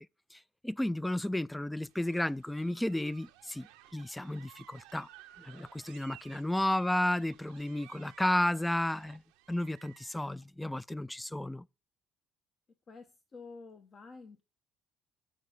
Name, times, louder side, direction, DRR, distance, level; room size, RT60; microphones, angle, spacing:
voice 1, 0.3-3.7 3.9-5.1 5.4-9.2 9.5-11.7, left 1 dB, 10° left, 0.4 m, -32 dB
sound 1, 1.8-10.4, right 14 dB, 85° right, 0.6 m, -57 dB
voice 2, 12.9-14.4, left 4 dB, 45° left, 1.0 m, -51 dB
8.8 x 4.3 x 5.1 m
hypercardioid pair, 60°, 0 cm